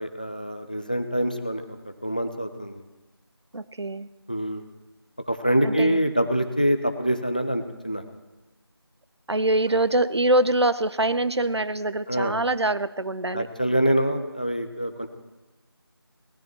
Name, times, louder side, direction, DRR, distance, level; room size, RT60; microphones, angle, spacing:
voice 1, 0.0-2.8 4.3-4.6 5.3-8.0 12.1-12.4 13.3-15.1, equal, 20° left, 8 dB, 0.5 m, -25 dB
voice 2, 3.5-4.1 5.6-6.0 9.3-13.5, right 1 dB, 85° right, 14 dB, 0.7 m, -24 dB
24.0 x 18.0 x 3.1 m, 1.1 s
figure-of-eight pair, 175°, 14 cm